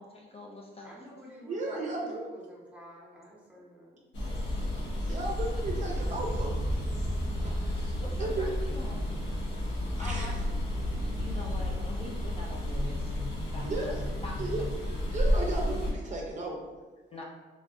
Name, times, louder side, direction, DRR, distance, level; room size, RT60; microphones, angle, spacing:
voice 1, 0.0-1.0 5.7-6.0 7.6-9.0 9.5-9.6 10.0-10.4 11.2-13.2 13.5-13.9 14.2-14.4 17.1-17.2, left 2 dB, 30° left, -2 dB, 0.5 m, -44 dB
voice 2, 0.8-4.1, equal, 5° right, -4 dB, 0.8 m, -49 dB
voice 3, 1.4-2.3 5.1-6.7 7.4-7.9 8.2-8.5 10.0-10.4 13.7-14.0 14.4-14.5 15.1-16.6, right 2 dB, 40° right, -2 dB, 0.6 m, -35 dB
sound 1, 4.1-15.9, left 1 dB, 70° left, 1.0 m, -31 dB
3.1 x 2.4 x 2.6 m, 1.3 s
cardioid pair, 90°, 20 cm